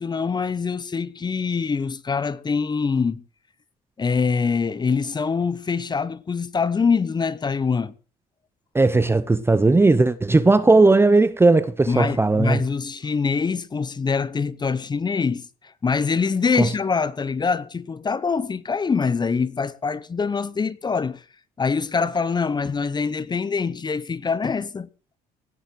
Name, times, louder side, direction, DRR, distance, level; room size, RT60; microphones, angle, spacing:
voice 1, 0.0-3.2 4.0-7.9 11.9-15.5 15.8-21.2 21.6-24.9, left 5 dB, 25° left, 0.9 m, -24 dB
voice 2, 8.7-12.6 16.6-16.7, right 3 dB, 15° right, 0.8 m, -17 dB
17.0 x 7.3 x 7.8 m
cardioid pair, 110°, 17 cm